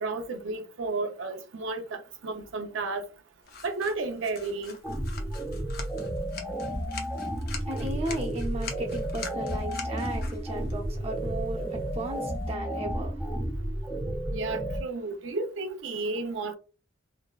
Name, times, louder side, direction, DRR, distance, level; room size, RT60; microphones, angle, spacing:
voice 1, 0.0-3.1 3.6-4.8 14.3-16.6, right 3 dB, 70° right, 0.5 m, -32 dB
sound 1, 3.4-12.5, left 5 dB, 50° left, 0.5 m, -45 dB
sound 2, 4.8-14.8, right 1 dB, ahead, 0.4 m, -32 dB
voice 2, 6.8-7.2 7.6-13.4, right 1 dB, 30° right, 0.7 m, -36 dB
2.6 x 2.1 x 2.3 m
head